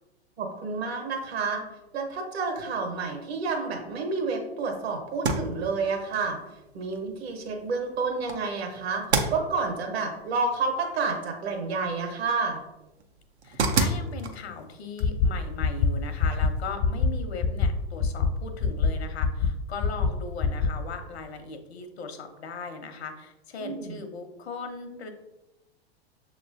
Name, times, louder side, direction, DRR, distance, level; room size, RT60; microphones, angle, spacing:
voice 1, 0.4-1.6 1.9-6.4 6.7-12.6 23.6-24.0, right 4 dB, 70° right, 2 dB, 1.4 m, -29 dB
sound 1, 5.1-16.7, right 3 dB, 90° right, 0.7 m, -34 dB
voice 2, 13.4-25.1, left 4 dB, 75° left, 7 dB, 0.8 m, -38 dB
sound 2, 15.0-15.3 15.6-15.9 16.2-16.5 16.8-17.1 17.4-17.7 18.0-18.3 18.6-18.9 19.2-19.5 19.8-20.1 20.4-20.7, left 6 dB, 45° left, 0.5 m, -22 dB
6.6 x 3.0 x 2.6 m, 1.0 s
hypercardioid pair, 105°, 32 cm